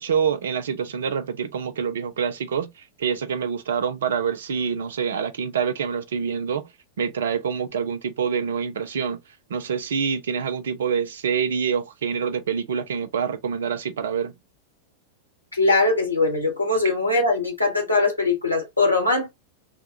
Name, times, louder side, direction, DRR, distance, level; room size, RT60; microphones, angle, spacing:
voice 1, 0.0-6.7 7.0-9.2 9.5-14.3, right 6 dB, 65° right, 0.6 m, -26 dB
voice 2, 15.5-19.3, left 3 dB, 85° left, 1.4 m, -21 dB
4.7 x 2.3 x 2.6 m
figure-of-eight pair, 90°, 0 cm